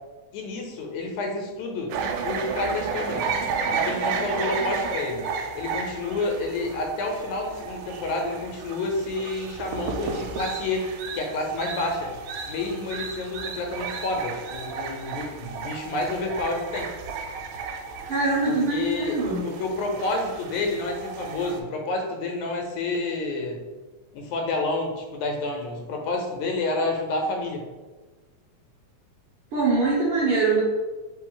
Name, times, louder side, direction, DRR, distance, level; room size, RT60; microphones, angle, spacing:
voice 1, 0.3-2.0 2.2-3.3 3.7-10.9 11.1-12.1 12.5-16.9 18.5-23.6 24.1-27.6, left 2 dB, 85° left, 2 dB, 2.1 m, -29 dB
sound 1, 1.9-21.6, right 5 dB, 90° right, 2.0 m, -33 dB
voice 2, 18.1-19.4 29.5-30.6, right 3 dB, 65° right, -7 dB, 1.5 m, -23 dB
4.2 x 3.2 x 3.7 m, 1.2 s
omnidirectional pair, 3.3 m